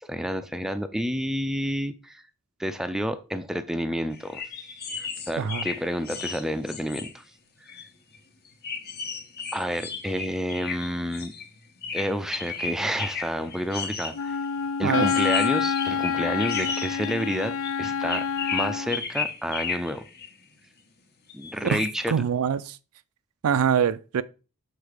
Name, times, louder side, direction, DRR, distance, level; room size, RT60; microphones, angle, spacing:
voice 1, 0.0-2.2 2.6-4.4 5.0-7.2 7.7-7.8 9.5-11.3 11.9-14.4 14.8-18.2 18.5-20.0 21.3-22.1, equal, ahead, 0.4 m, -30 dB
sound 1, 4.1-7.1 7.7-7.9 8.1-8.2 8.6-11.5 11.8-14.1 15.0-20.3 21.3-22.0, left 5 dB, 45° left, 1.2 m, -34 dB
Wind instrument woodwind instrument, 14.1-19.0, left 6 dB, 60° left, 0.4 m, -27 dB
voice 2, 21.6-22.8 23.4-24.2, right 7 dB, 75° right, 0.4 m, -24 dB
6.6 x 4.0 x 5.0 m
head